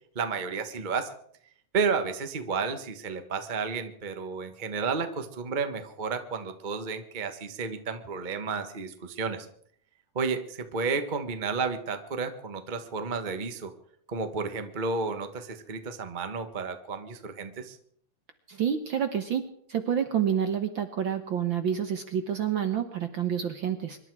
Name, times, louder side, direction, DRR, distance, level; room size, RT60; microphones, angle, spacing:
voice 1, 0.1-1.1 1.7-9.5 10.1-13.7 14.1-17.8, right 5 dB, 45° right, 7 dB, 0.6 m, -32 dB
voice 2, 18.5-24.0, right 8 dB, 60° right, 8 dB, 1.3 m, -28 dB
25.0 x 11.5 x 4.7 m, 0.63 s
omnidirectional pair, 3.3 m